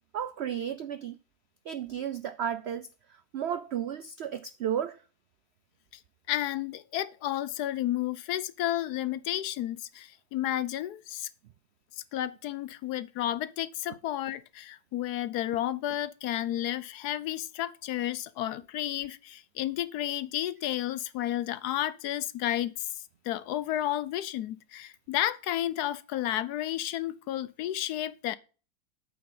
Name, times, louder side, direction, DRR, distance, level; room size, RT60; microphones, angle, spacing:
voice 1, 0.1-1.2 1.7-2.9 3.3-5.0, right 9 dB, 75° right, 0.6 m, -33 dB
voice 2, 6.3-11.3 12.0-22.9 23.2-28.4, left 13 dB, 80° left, 1.1 m, -32 dB
8.7 x 5.3 x 5.3 m
omnidirectional pair, 1.7 m